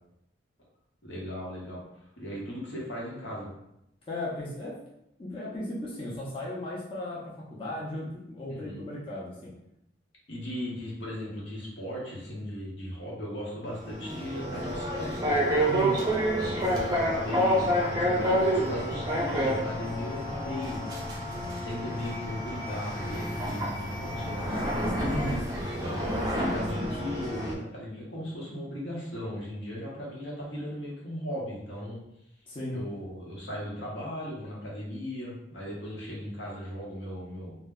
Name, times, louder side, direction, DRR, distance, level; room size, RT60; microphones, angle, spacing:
voice 1, 1.0-1.8 2.2-3.5 8.5-8.8 10.3-15.4 16.4-20.8 21.6-24.8 25.6-32.0 32.7-37.5, equal, 75° left, -4 dB, 0.9 m, -37 dB
voice 2, 4.1-4.8 5.2-9.5 15.7-16.0 25.1-25.4 32.5-32.8, left 1 dB, 30° left, -6 dB, 0.5 m, -35 dB
sound 1, 13.7-27.5, equal, 25° right, 0.5 m, -29 dB
2.1 x 2.0 x 3.4 m, 0.81 s
head